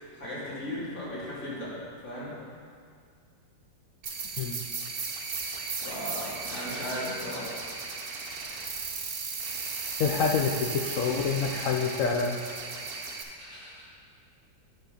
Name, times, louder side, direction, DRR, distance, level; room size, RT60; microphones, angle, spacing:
voice 1, 0.1-1.7 2.0-2.4 5.8-7.5 13.4-13.8, left 1 dB, 45° left, -9 dB, 3.0 m, -37 dB
sound 1, 4.0-13.2, right 4 dB, 55° right, 0.6 m, -36 dB
voice 2, 10.0-12.4, left 5 dB, 75° left, 1 dB, 0.7 m, -27 dB
9.4 x 4.3 x 6.4 m, 2.1 s
omnidirectional pair, 2.0 m